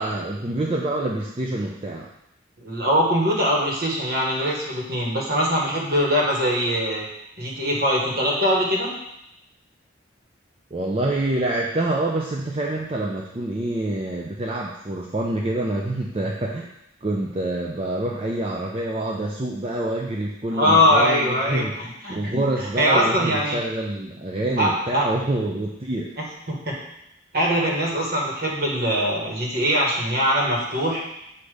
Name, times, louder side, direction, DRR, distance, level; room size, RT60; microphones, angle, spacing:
voice 1, 0.0-2.1 10.7-16.7 17.0-21.7 22.1-26.1, right 1 dB, 30° right, -2 dB, 0.5 m, -26 dB
voice 2, 2.6-7.1 7.4-8.9 20.5-23.6 24.6-25.0 26.5-26.8 27.3-31.0, equal, 55° right, -2 dB, 1.5 m, -22 dB
7.9 x 2.8 x 4.9 m, 0.81 s
head